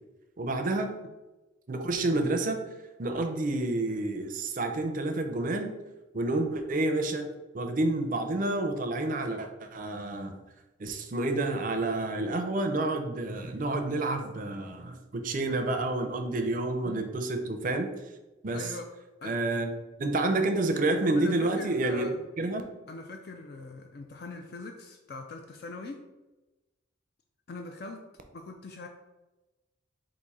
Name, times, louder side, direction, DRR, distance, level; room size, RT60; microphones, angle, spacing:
voice 1, 0.4-1.0 1.7-2.6 3.0-5.8 6.1-7.3 7.5-10.3 10.8-17.9 18.4-18.7 19.2-19.7 20.0-22.1 22.4-22.6, right 2 dB, 45° right, 6 dB, 0.5 m, -29 dB
voice 2, 18.5-18.9 19.2-19.4 21.2-22.2 22.9-26.0 27.5-28.1 28.3-28.9, left 3 dB, 50° left, 4 dB, 0.4 m, -42 dB
4.1 x 2.6 x 4.7 m, 1.1 s
head